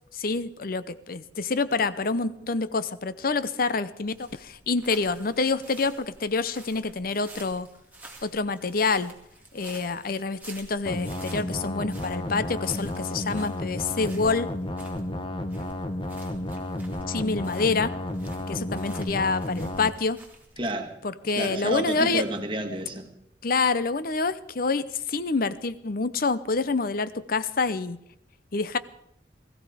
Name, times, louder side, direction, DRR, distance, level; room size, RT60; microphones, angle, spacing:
voice 1, 0.1-7.7 8.2-9.1 9.5-14.5 17.1-17.9 18.5-20.2 21.0-22.2 23.4-28.0 28.5-28.8, left 4 dB, 50° left, 15 dB, 0.7 m, -27 dB
sound 1, 4.0-20.7, right 2 dB, 10° right, 2.2 m, -50 dB
sound 2, 10.9-19.9, left 1 dB, 25° left, 1.1 m, -32 dB
voice 2, 20.6-21.0 21.4-23.1, right 1 dB, 25° right, 4 dB, 1.6 m, -30 dB
19.5 x 14.5 x 5.0 m, 0.79 s
head